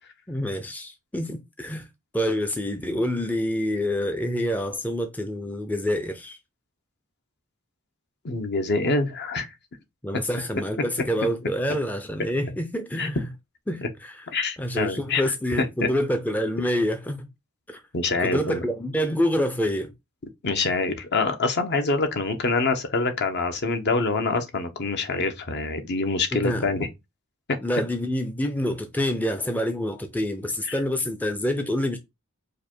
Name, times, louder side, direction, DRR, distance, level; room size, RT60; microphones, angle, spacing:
voice 1, 0.3-1.9 2.1-6.4 10.0-13.3 13.7-14.3 14.6-17.3 17.7-17.8 18.2-19.9 26.3-26.7 27.6-32.0, equal, 5° left, 0.5 m, -27 dB
voice 2, 8.2-9.5 13.0-13.1 13.8-13.9 14.3-15.2 15.8-15.9 17.9-18.6 20.4-26.9 30.7-30.8, left 3 dB, 50° left, 0.9 m, -25 dB
5.0 x 2.2 x 4.3 m
head